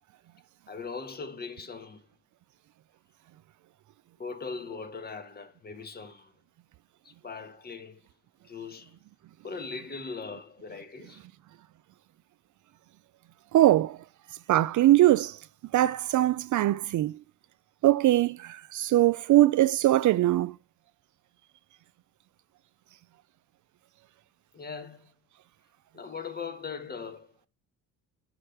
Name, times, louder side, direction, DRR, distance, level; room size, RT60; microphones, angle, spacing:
voice 1, 0.7-2.0 4.2-6.3 7.0-8.0 8.4-8.9 9.4-11.2 24.5-25.1 25.9-27.3, left 5 dB, 25° left, 1.5 m, -40 dB
voice 2, 13.5-14.0 14.5-15.4 15.7-17.1 17.8-20.6, right 14 dB, 55° right, 0.5 m, -22 dB
11.0 x 5.1 x 5.7 m
cardioid pair, 125°, 35 cm